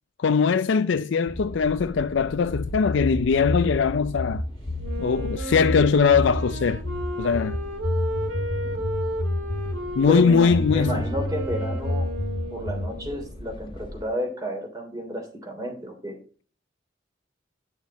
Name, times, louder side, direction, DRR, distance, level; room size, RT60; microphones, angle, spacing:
voice 1, 0.2-4.4 5.0-6.8 7.2-7.6 10.0-11.0, left 5 dB, 70° left, 0.4 m, -21 dB
sound 1, 1.3-14.0, left 1 dB, 25° left, 1.0 m, -41 dB
sound 2, 2.5-9.8 10.5-13.0, left 1 dB, 45° left, 0.8 m, -29 dB
Wind instrument woodwind instrument, 4.8-13.3, right 1 dB, 90° right, 2.0 m, -34 dB
voice 2, 10.1-12.1 12.5-16.2, equal, 20° right, 3.1 m, -31 dB
10.5 x 6.3 x 4.0 m
head